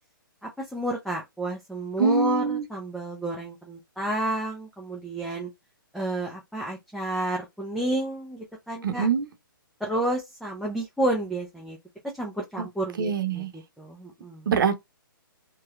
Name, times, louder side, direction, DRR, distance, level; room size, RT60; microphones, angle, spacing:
voice 1, 0.4-5.5 5.9-9.1 9.8-11.8 12.2-14.5, right 1 dB, ahead, 0.6 m, -30 dB
voice 2, 2.0-2.6 8.8-9.3 12.6-12.7 13.0-13.5 14.5-14.7, right 6 dB, 65° right, 0.9 m, -24 dB
3.0 x 2.9 x 2.4 m
hypercardioid pair, 145°, 12 cm